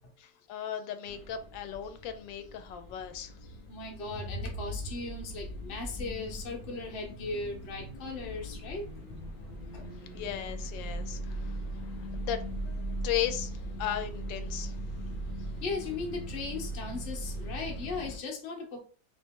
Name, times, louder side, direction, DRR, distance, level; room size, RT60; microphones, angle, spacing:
voice 1, 0.2-3.3 10.1-11.6 12.1-13.5 13.8-14.7, left 10 dB, 85° left, 1.3 m, -36 dB
sound 1, 1.0-18.2, right 1 dB, 70° left, 0.5 m, -39 dB
voice 2, 3.7-8.9 9.2-9.3 9.7-9.8 15.6-18.8, left 3 dB, 45° left, 0.8 m, -37 dB
3.0 x 2.7 x 3.5 m
omnidirectional pair, 2.0 m